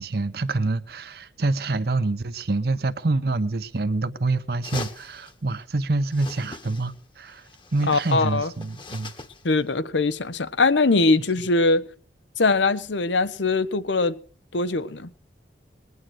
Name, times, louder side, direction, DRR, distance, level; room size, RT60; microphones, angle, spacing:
voice 1, 0.0-9.1, right 2 dB, 60° right, 0.8 m, -26 dB
sound 1, 4.6-5.3 6.1-7.0 7.3-9.5, left 3 dB, 25° left, 1.2 m, -40 dB
voice 2, 7.9-8.5 9.4-11.8 12.4-14.2 14.5-15.1, left 3 dB, 85° left, 1.0 m, -21 dB
20.5 x 9.6 x 6.4 m
head